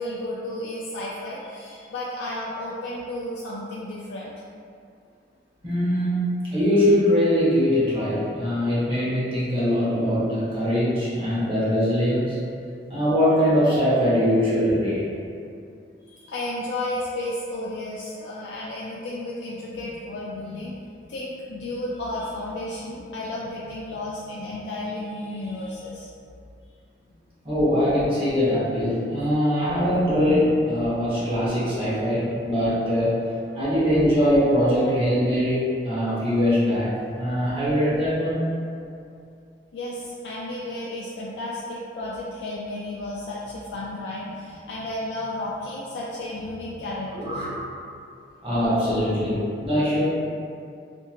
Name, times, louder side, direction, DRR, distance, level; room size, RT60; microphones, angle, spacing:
voice 1, 0.0-4.3 16.0-20.7 21.1-26.1 39.7-47.6, left 1 dB, 85° left, -6 dB, 0.3 m, -33 dB
voice 2, 5.6-12.4 12.9-15.1 27.4-33.2 33.5-36.9 37.2-38.4 47.1-47.6 48.4-50.0, equal, 30° right, -10 dB, 0.9 m, -22 dB
2.8 x 2.6 x 2.4 m, 2.4 s
head